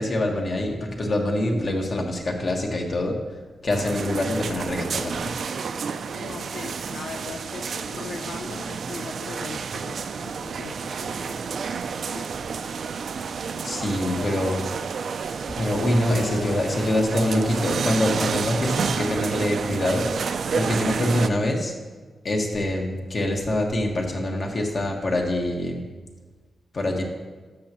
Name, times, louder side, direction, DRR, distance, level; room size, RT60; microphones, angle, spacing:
voice 1, 0.0-3.2 3.6-5.3 13.6-14.6 15.6-21.7 22.2-25.9 26.7-27.0, left 1 dB, 50° left, 1 dB, 1.6 m, -25 dB
sound 1, 3.7-21.3, right 6 dB, 70° right, 0.4 m, -30 dB
voice 2, 6.1-11.5 12.1-12.3 13.6-14.7 16.1-16.6, left 4 dB, 85° left, 3 dB, 0.6 m, -40 dB
12.5 x 6.8 x 3.0 m, 1.4 s
cardioid pair, 65°, 0 cm